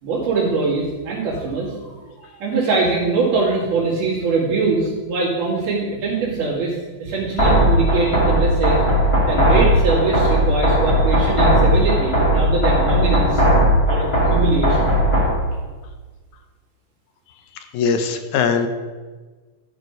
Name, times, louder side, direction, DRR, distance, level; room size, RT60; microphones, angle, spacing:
voice 1, 0.0-2.0 2.4-8.8 9.3-13.4 13.9-14.9, right 4 dB, 80° right, -6 dB, 3.8 m, -22 dB
sound 1, 7.4-15.4, equal, 15° left, 1.2 m, -17 dB
voice 2, 17.6-18.7, left 6 dB, 75° left, 7 dB, 2.0 m, -21 dB
12.5 x 4.6 x 5.3 m, 1.4 s
omnidirectional pair, 3.6 m